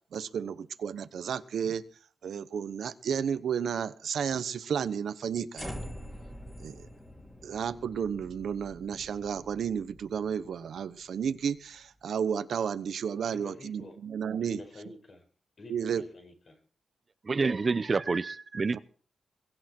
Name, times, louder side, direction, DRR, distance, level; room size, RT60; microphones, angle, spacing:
voice 1, 0.1-1.8 2.2-5.7 6.6-6.7 7.4-14.6 15.7-16.0 18.7-18.8, right 7 dB, 80° right, 12 dB, 1.1 m, -32 dB
sound 1, 5.5-11.8, equal, 15° left, 3.5 m, -46 dB
voice 2, 13.3-14.0 14.4-15.2 15.6-16.5 17.4-17.6, left 1 dB, 50° left, 3 dB, 5.4 m, -48 dB
voice 3, 17.3-18.8, right 4 dB, 35° right, 14 dB, 0.6 m, -28 dB
23.0 x 11.0 x 4.6 m, 0.43 s
wide cardioid pair, 135°, 0 cm